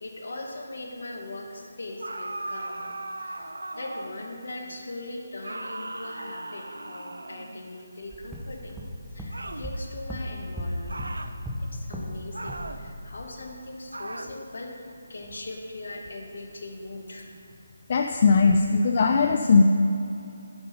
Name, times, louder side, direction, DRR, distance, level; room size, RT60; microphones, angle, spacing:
voice 1, 0.0-8.8 9.1-11.0 11.6-17.3, left 2 dB, 65° left, 1 dB, 1.3 m, -40 dB
sound 1, 2.0-4.3 5.4-7.7 9.3-9.7 10.9-11.4 12.3-12.9 13.9-14.4, right 2 dB, 80° right, 0.5 m, -37 dB
sound 2, 8.1-12.2 12.5-12.8, equal, 5° right, 0.7 m, -35 dB
voice 2, 17.9-19.6, left 4 dB, 45° left, 4 dB, 0.4 m, -19 dB
7.8 x 5.5 x 5.5 m, 2.7 s
figure-of-eight pair, 155°, 0 cm